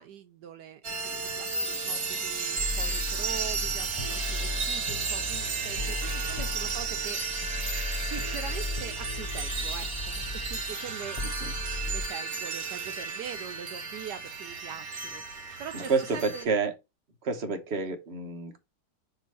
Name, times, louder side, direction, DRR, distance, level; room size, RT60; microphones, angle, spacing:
voice 1, 0.0-7.2 8.0-11.2 11.8-15.2 15.6-16.6, right 8 dB, 75° right, 1.3 m, -42 dB
sound 1, 0.8-16.4, right 4 dB, 55° right, 1.6 m, -33 dB
sound 2, 2.6-12.1, left 2 dB, 25° left, 0.8 m, -36 dB
voice 2, 15.7-16.7 17.2-18.6, right 4 dB, 40° right, 1.3 m, -29 dB
6.4 x 3.2 x 5.6 m
omnidirectional pair, 1.9 m